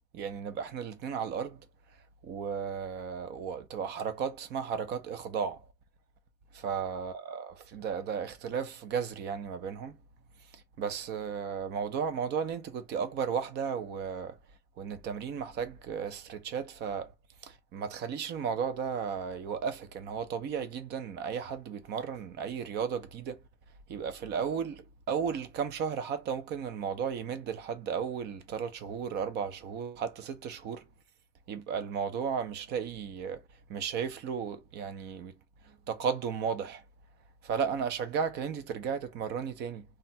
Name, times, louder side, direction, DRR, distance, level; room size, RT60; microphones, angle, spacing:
voice 1, 0.1-1.6 2.2-5.6 6.6-10.0 10.8-14.3 14.8-17.1 17.7-23.4 23.9-24.8 25.1-30.8 31.5-33.4 33.7-35.3 35.9-36.8 37.4-39.8, right 7 dB, 80° right, 0.7 m, -34 dB
2.5 x 2.2 x 4.0 m
cardioid pair, 110°, 17 cm